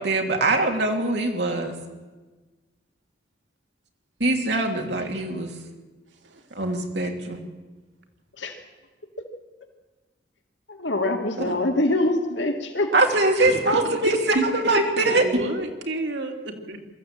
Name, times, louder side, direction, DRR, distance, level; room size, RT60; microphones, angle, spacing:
voice 1, 0.0-1.7 4.2-5.5 6.5-7.4 11.5-11.6 12.9-15.2, right 2 dB, 70° right, 2 dB, 3.0 m, -22 dB
voice 2, 10.7-12.9, left 2 dB, 85° left, 4 dB, 2.4 m, -24 dB
voice 3, 13.8-14.4 15.0-16.9, right 2 dB, 85° right, 3 dB, 3.0 m, -29 dB
23.0 x 14.5 x 9.0 m, 1.2 s
head